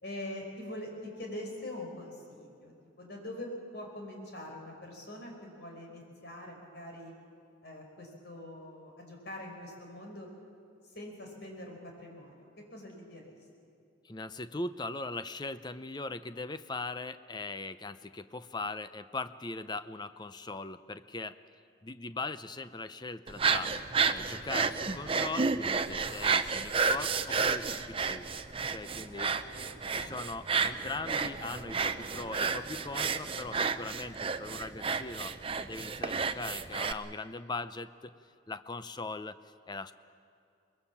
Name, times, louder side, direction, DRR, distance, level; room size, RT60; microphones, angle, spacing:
voice 1, 0.0-7.1 7.6-10.3 10.8-13.4 29.3-30.2, left 1 dB, 55° left, 1 dB, 4.8 m, -44 dB
voice 2, 14.0-21.4 21.8-23.7 24.1-28.3 28.7-29.3 29.9-38.1 38.5-39.9, left 3 dB, 20° left, 13 dB, 0.6 m, -40 dB
sound 1, 23.3-36.9, right 5 dB, 30° right, 0.7 m, -31 dB
24.0 x 21.0 x 7.2 m, 2.4 s
head